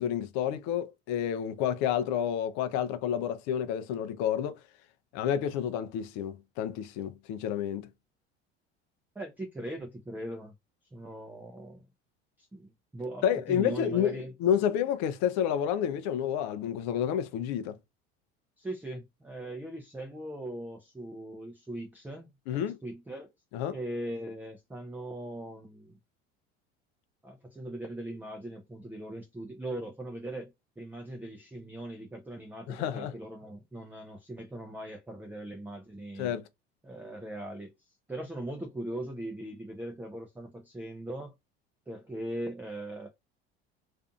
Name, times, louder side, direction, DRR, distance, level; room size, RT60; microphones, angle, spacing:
voice 1, 0.0-4.6 5.1-7.9 13.2-17.8 22.5-22.8 23.5-23.8 32.7-33.1 36.2-36.5, left 9 dB, 60° left, 0.5 m, -30 dB
voice 2, 9.2-10.5 10.9-11.9 12.4-14.3 18.6-23.3 23.7-26.0 27.2-36.3 36.8-41.3 41.9-43.1, right 1 dB, 5° right, 0.4 m, -40 dB
2.5 x 2.5 x 2.4 m
hypercardioid pair, 75°, 31 cm